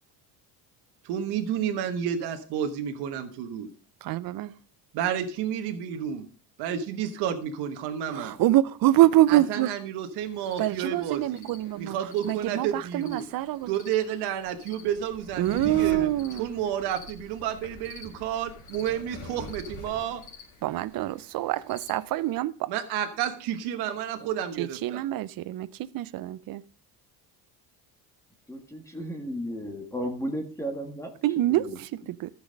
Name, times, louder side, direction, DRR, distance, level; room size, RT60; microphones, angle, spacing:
voice 1, 1.0-3.7 4.9-6.3 6.6-8.4 9.3-11.5 11.8-13.2 13.7-16.1 16.4-20.2 22.7-25.0, right 9 dB, 85° right, 1.3 m, -31 dB
voice 2, 4.0-4.5 8.1-9.7 10.6-12.0 12.2-13.7 15.4-16.5 20.6-22.7 24.6-26.6 31.2-32.3, right 14 dB, 60° right, 0.6 m, -25 dB
sound 1, 10.2-22.3, left 2 dB, 50° left, 3.0 m, -46 dB
voice 3, 28.5-31.1 31.5-31.8, equal, 10° left, 1.7 m, -34 dB
14.0 x 6.2 x 5.1 m
cardioid pair, 115°, 38 cm